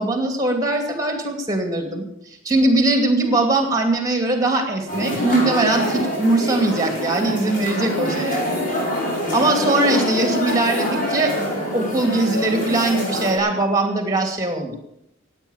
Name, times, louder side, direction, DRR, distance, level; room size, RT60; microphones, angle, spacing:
voice 1, 0.0-8.5 9.3-11.3 11.7-14.8, right 2 dB, 15° right, 5 dB, 2.5 m, -21 dB
sound 1, 4.9-13.4, left 1 dB, 40° left, 5.0 m, -25 dB
16.0 x 9.2 x 7.3 m, 0.79 s
head